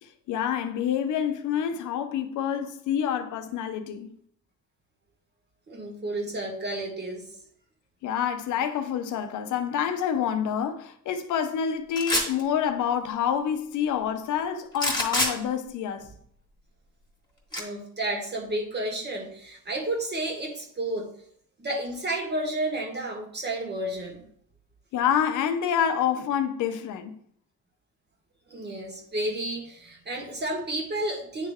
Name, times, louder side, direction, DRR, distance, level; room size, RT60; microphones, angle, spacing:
voice 1, 0.0-4.1 8.0-16.1 24.9-27.2, left 8 dB, 80° left, 0.8 m, -27 dB
voice 2, 5.7-7.3 17.5-21.1 21.6-24.2 28.5-31.5, right 1 dB, 35° right, 1.7 m, -31 dB
sound 1, 11.9-12.4 14.7-15.3 17.5-17.6, left 1 dB, 15° left, 1.9 m, -25 dB
9.3 x 3.3 x 3.6 m
cardioid pair, 90°, 30 cm